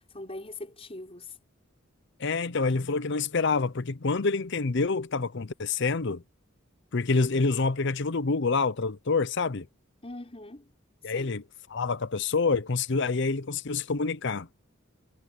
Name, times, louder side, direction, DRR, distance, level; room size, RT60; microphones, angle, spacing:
voice 1, 0.0-1.4 10.0-10.7 11.0-11.4, left 2 dB, 30° left, 5.7 m, -42 dB
voice 2, 2.2-6.2 6.9-9.7 11.0-11.4 11.7-14.5, left 4 dB, 60° left, 0.7 m, -27 dB
head